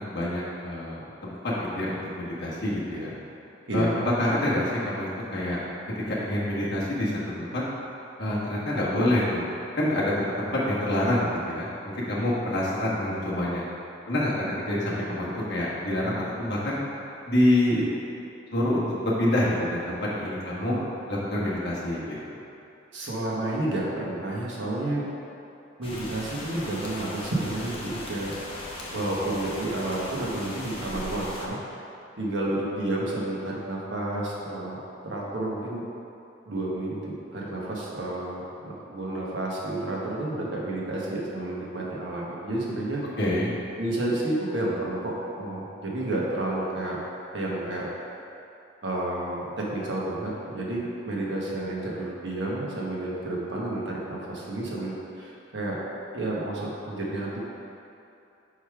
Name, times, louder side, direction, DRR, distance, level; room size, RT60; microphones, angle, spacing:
voice 1, 0.0-3.1 3.7-3.8 4.2-5.6 6.1-7.6 8.2-9.5 9.8-11.7 11.9-13.6 14.1-16.8 17.2-17.9 18.5-22.3 43.2-43.5, left 1 dB, 55° left, -7 dB, 1.5 m, -27 dB
voice 2, 3.7-4.0 20.6-20.9 22.9-25.0 25.8-28.3 28.9-31.6 32.2-35.8 36.5-43.0 43.7-47.0 47.3-47.9 48.8-55.8 56.1-57.4, right 1 dB, 65° right, -5 dB, 1.2 m, -30 dB
sound 1, 25.8-31.5, left 1 dB, 30° left, 0.8 m, -38 dB
5.3 x 4.8 x 4.8 m, 2.8 s
head